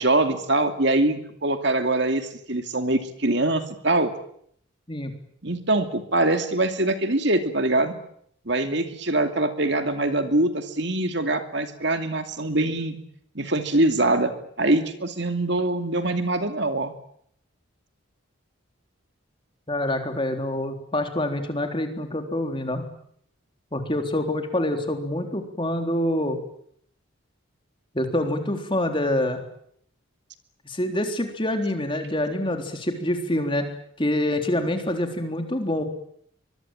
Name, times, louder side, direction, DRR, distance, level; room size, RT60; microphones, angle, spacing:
voice 1, 0.0-4.1 5.4-7.9 8.5-13.0 13.3-16.9, right 2 dB, 55° right, 7 dB, 2.6 m, -23 dB
voice 2, 19.7-22.8 23.7-26.4 27.9-29.4 30.7-33.7 34.0-35.8, left 1 dB, 25° left, 5 dB, 3.7 m, -26 dB
24.5 x 23.0 x 9.1 m, 0.68 s
head